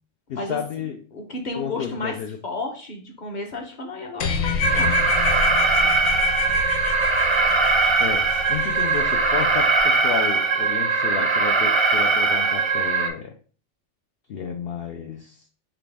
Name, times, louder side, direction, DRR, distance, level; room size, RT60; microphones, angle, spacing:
voice 1, 0.3-1.0 1.6-2.4 8.0-13.3 14.3-15.4, left 7 dB, 60° left, 3 dB, 0.7 m, -31 dB
voice 2, 1.1-2.2 2.4-5.0, left 2 dB, 40° left, 2 dB, 1.0 m, -32 dB
sound 1, 4.2-9.8, left 6 dB, 85° left, 1.0 m, -28 dB
Alarm, 4.6-13.1, right 4 dB, 40° right, 0.4 m, -20 dB
5.8 x 2.4 x 3.4 m, 0.40 s
omnidirectional pair, 1.2 m